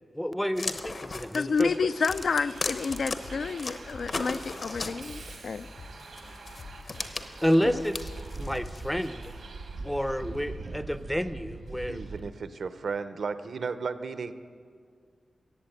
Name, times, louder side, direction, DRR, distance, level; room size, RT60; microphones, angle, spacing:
voice 1, 0.1-1.9 7.4-8.1 8.4-9.2 9.8-12.0, equal, 5° left, 12 dB, 0.5 m, -29 dB
Wood panel board cracking snapping, 0.5-3.2 3.6-5.4 6.2-8.8, left 3 dB, 45° left, 0.9 m, -36 dB
voice 2, 1.3-5.7, left 5 dB, 65° left, 13 dB, 0.4 m, -29 dB
Bus, 1.7-12.2, right 3 dB, 90° right, 1.6 m, -43 dB
sound 1, 2.1-9.5, left 3 dB, 85° left, 3.3 m, -48 dB
voice 3, 11.9-14.3, right 5 dB, 65° right, 11 dB, 0.7 m, -34 dB
15.0 x 8.1 x 9.1 m, 2.1 s
wide cardioid pair, 165°, 0 cm